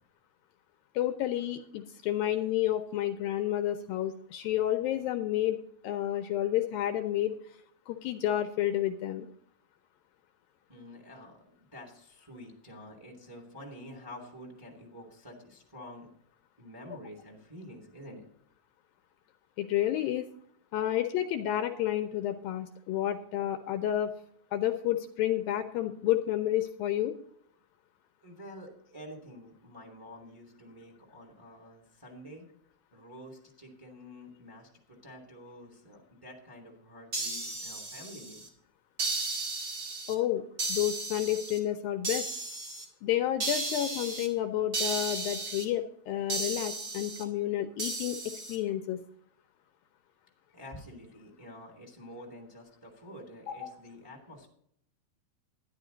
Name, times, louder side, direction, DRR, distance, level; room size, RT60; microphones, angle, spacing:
voice 1, 0.9-5.6 5.8-7.4 7.9-9.3 19.6-20.3 20.7-24.1 24.5-27.1 40.1-40.4 40.7-42.3 43.0-48.2 48.5-49.0 53.5-53.7, left 12 dB, 80° left, 7 dB, 2.3 m, -30 dB
voice 2, 10.7-16.1 16.6-18.2 28.2-32.4 32.9-38.5 50.5-54.5, equal, 10° right, 1 dB, 1.7 m, -48 dB
sound 1, 37.1-38.5 39.0-40.1 40.6-41.6 42.0-42.8 43.4-44.3 44.7-45.6 46.3-47.2 47.8-48.6, right 3 dB, 30° right, 1.8 m, -34 dB
12.0 x 11.0 x 3.9 m, 0.68 s
omnidirectional pair, 4.5 m